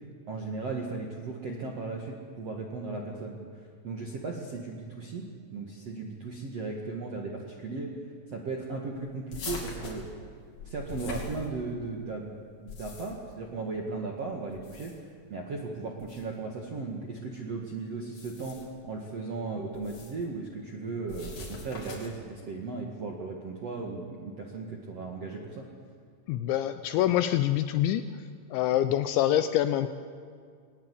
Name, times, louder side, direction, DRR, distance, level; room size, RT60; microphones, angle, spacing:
voice 1, 0.3-5.2 5.5-8.0 8.3-10.1 10.6-25.7, right 3 dB, 80° right, 0 dB, 1.4 m, -36 dB
sound 1, 9.3-11.9 12.5-13.3 14.5-15.2 16.0-16.2 18.0-18.8 19.7-20.2 21.1-22.3, left 2 dB, 40° left, 4.0 m, -42 dB
voice 2, 26.3-28.0 28.5-29.9, left 12 dB, 85° left, 10 dB, 2.6 m, -25 dB
21.5 x 19.0 x 8.4 m, 2.1 s
omnidirectional pair, 5.9 m